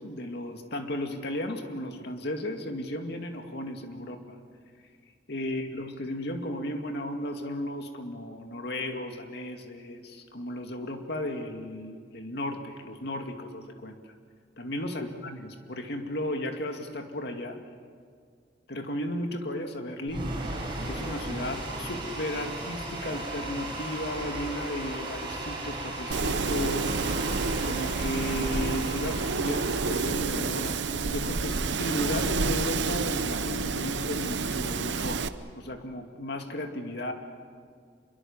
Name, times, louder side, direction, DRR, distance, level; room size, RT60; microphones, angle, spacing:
voice 1, 0.0-4.2 5.3-14.0 14.6-17.6 18.7-20.3 20.9-35.2 35.6-37.1, left 1 dB, 65° left, 4 dB, 2.3 m, -35 dB
sound 1, 20.1-32.2, right 2 dB, 30° right, 5.8 m, -37 dB
Guitar, 20.4-28.4, left 1 dB, 35° left, 4.9 m, -51 dB
Wind, 26.1-35.3, right 4 dB, 75° right, 0.9 m, -29 dB
26.0 x 23.0 x 7.2 m, 2.1 s
head